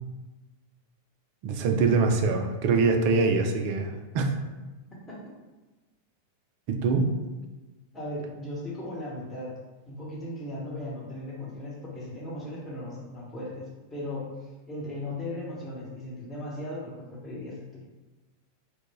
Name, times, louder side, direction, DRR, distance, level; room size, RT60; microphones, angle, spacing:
voice 1, 1.4-4.3 6.7-7.1, right 4 dB, 45° right, 4 dB, 0.3 m, -24 dB
voice 2, 7.9-9.6 9.9-17.9, left 1 dB, 15° left, -6 dB, 0.9 m, -37 dB
2.1 x 2.0 x 3.3 m, 1.2 s
figure-of-eight pair, 90°, 0 cm